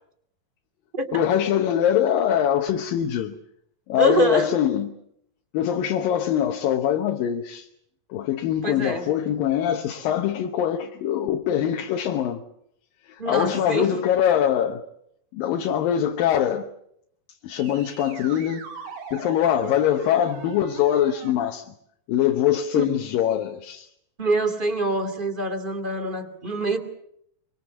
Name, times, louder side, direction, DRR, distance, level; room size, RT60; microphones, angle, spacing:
voice 1, 1.1-3.3 3.9-5.0 5.5-7.7 8.1-12.4 13.1-14.8 15.3-16.7 17.4-18.7 19.1-21.7 22.1-23.9, left 10 dB, 85° left, 2.8 m, -23 dB
voice 2, 4.0-4.5 8.6-9.1 13.2-13.9 22.7-22.9 24.2-26.8, right 2 dB, 15° right, 2.2 m, -25 dB
sound 1, 17.5-21.3, right 5 dB, 80° right, 4.1 m, -39 dB
24.5 x 24.5 x 7.3 m
omnidirectional pair, 3.9 m